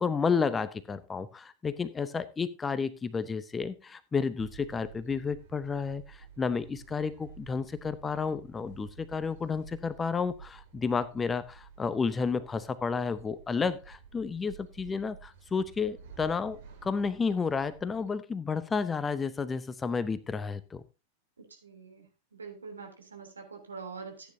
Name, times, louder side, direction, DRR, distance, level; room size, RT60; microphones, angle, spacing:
voice 1, 0.0-20.8, left 5 dB, 15° left, 15 dB, 0.7 m, -31 dB
sound 1, 4.4-18.1, right 6 dB, 55° right, 3.4 m, -52 dB
voice 2, 21.5-22.0 22.3-24.3, right 5 dB, 75° right, 2 dB, 3.2 m, -44 dB
14.5 x 9.3 x 2.7 m, 0.27 s
figure-of-eight pair, 90°, 0 cm